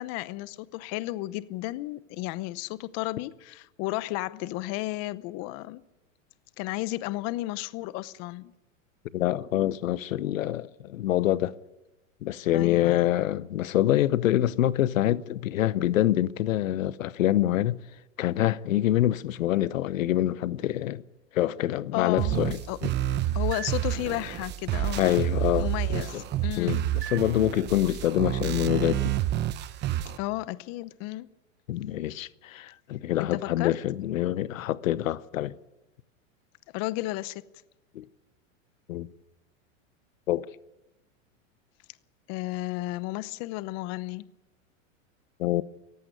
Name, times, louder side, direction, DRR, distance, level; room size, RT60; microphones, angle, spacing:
voice 1, 0.0-5.8 6.6-8.5 12.5-13.0 21.9-22.4 22.7-22.8 23.3-25.2 25.6-26.8 30.0-31.3 33.3-33.7 36.7-37.4 42.3-44.3, left 18 dB, 40° left, 0.8 m, -33 dB
voice 2, 9.1-11.5 12.2-17.8 18.2-21.0 21.3-22.9 25.0-26.2 26.6-29.1 31.7-35.5 37.9-38.0 38.9-39.1 40.3-40.5 45.4-45.6, left 13 dB, 90° left, 0.9 m, -26 dB
sound 1, 22.2-30.2, right 13 dB, 25° right, 0.9 m, -29 dB
17.5 x 15.5 x 9.9 m
supercardioid pair, 135°, 39 cm